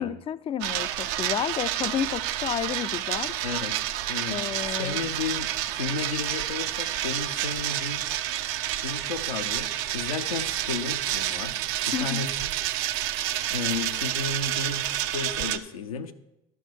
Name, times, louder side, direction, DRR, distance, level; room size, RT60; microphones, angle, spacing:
voice 1, 0.0-3.3 4.3-5.0 11.9-12.3, left 10 dB, 30° left, 0.4 m, -31 dB
sound 1, 0.6-15.6, right 13 dB, 65° right, 0.5 m, -29 dB
voice 2, 3.4-3.8 4.1-4.4 4.8-8.0 8.8-11.6 11.9-12.3 13.5-16.1, left 5 dB, 90° left, 0.7 m, -33 dB
12.0 x 4.6 x 6.4 m
hypercardioid pair, 70°, 18 cm